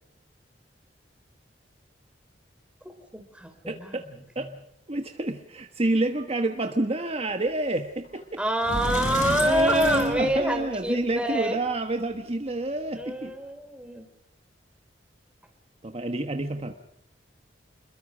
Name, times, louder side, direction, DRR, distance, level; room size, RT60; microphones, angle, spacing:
voice 1, 2.8-4.5 8.4-11.6 12.9-14.0, right 1 dB, 5° right, 6 dB, 3.3 m, -27 dB
voice 2, 3.7-4.0 4.3-4.5 4.9-8.2 9.4-13.3 15.8-16.7, right 2 dB, 35° right, 6 dB, 1.3 m, -28 dB
Sliding door, 8.1-8.2 8.6-10.9, left 1 dB, 45° left, 4.5 m, -31 dB
29.0 x 22.0 x 5.1 m, 0.79 s
head